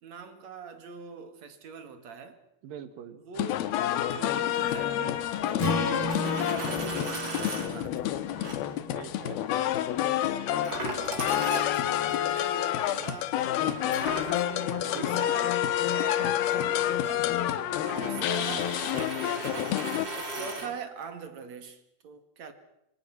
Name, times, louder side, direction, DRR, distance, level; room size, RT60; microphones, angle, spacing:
voice 1, 0.0-2.4 3.2-3.7 4.1-6.2 6.5-8.2 10.3-13.4 13.7-14.3 14.8-15.6 15.9-17.3 18.0-19.8 20.1-22.5, right 6 dB, 50° right, 8 dB, 3.0 m, -42 dB
voice 2, 2.6-3.2 8.9-9.5 14.9-15.4 17.8-18.2 20.4-20.8, right 9 dB, 70° right, 11 dB, 3.1 m, -43 dB
sound 1, 3.4-20.1, left 12 dB, 85° left, 2.9 m, -29 dB
Strum, 5.6-9.9, left 3 dB, 40° left, 2.6 m, -34 dB
Coin (dropping), 5.9-7.7 8.4-8.6 10.6-12.1 13.9-20.7, right 2 dB, 30° right, 4.4 m, -38 dB
25.5 x 25.0 x 6.0 m, 0.82 s
omnidirectional pair, 4.3 m